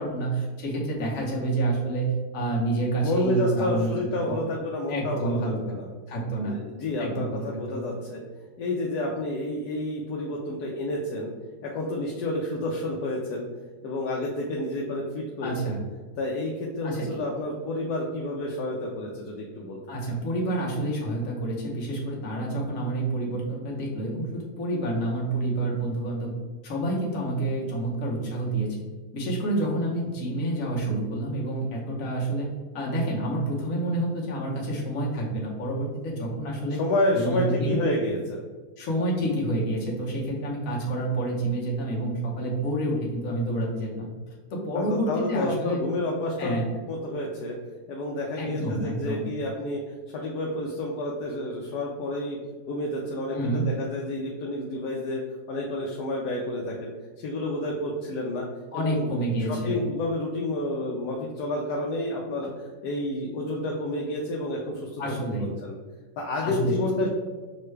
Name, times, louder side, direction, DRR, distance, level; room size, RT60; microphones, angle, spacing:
voice 1, 0.0-4.0 4.3-4.4 4.9-5.6 6.1-6.5 7.0-7.8 15.4-15.8 16.8-17.2 19.9-26.3 26.6-28.9 29.1-32.5 32.7-36.8 37.1-37.8 38.8-44.1 44.5-45.8 46.4-46.7 48.4-49.2 53.3-53.7 58.7-59.8 65.0-65.5 66.4-66.7, right 1 dB, 60° left, -3 dB, 1.3 m, -28 dB
voice 2, 3.0-5.9 6.5-8.2 8.6-11.3 11.6-13.5 13.8-15.8 16.2-20.0 36.8-38.4 44.7-46.6 46.9-47.6 47.9-49.8 50.1-52.4 52.7-55.2 55.5-56.9 57.2-58.5 58.7-59.1 59.5-65.2 65.6-65.7 66.2-67.1, left 1 dB, 75° left, -2 dB, 1.1 m, -29 dB
6.5 x 2.2 x 3.2 m, 1.4 s
omnidirectional pair, 1.7 m